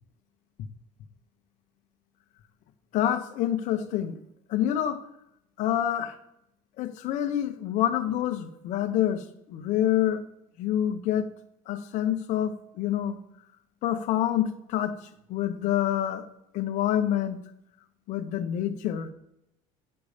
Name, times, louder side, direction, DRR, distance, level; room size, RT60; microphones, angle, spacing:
voice 1, 2.9-4.2 4.5-5.0 5.6-6.1 6.8-10.2 10.6-11.3 11.7-13.2 13.8-15.0 15.3-16.3 16.5-17.4 18.1-19.1, left 11 dB, 65° left, 1.2 m, -27 dB
9.8 x 6.0 x 5.0 m
cardioid pair, 110°, 13 cm